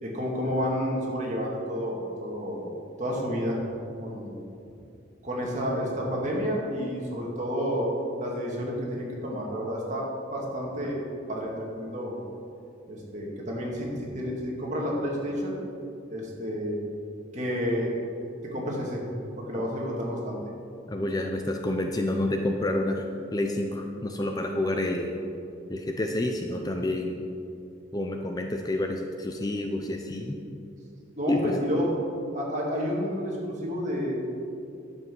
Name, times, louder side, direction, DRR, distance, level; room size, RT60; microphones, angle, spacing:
voice 1, 0.0-2.7 3.0-3.6 4.0-4.4 5.2-7.9 8.2-11.0 11.3-12.2 12.9-15.6 16.1-16.8 17.3-18.0 18.4-19.0 19.4-20.4 31.2-31.9 32.3-34.2, equal, 35° right, -3 dB, 2.2 m, -30 dB
voice 2, 20.9-23.1 23.3-25.2 25.7-27.2 27.9-30.4 31.3-31.5, left 1 dB, 20° left, 3 dB, 0.5 m, -29 dB
11.0 x 7.3 x 6.2 m, 2.6 s
head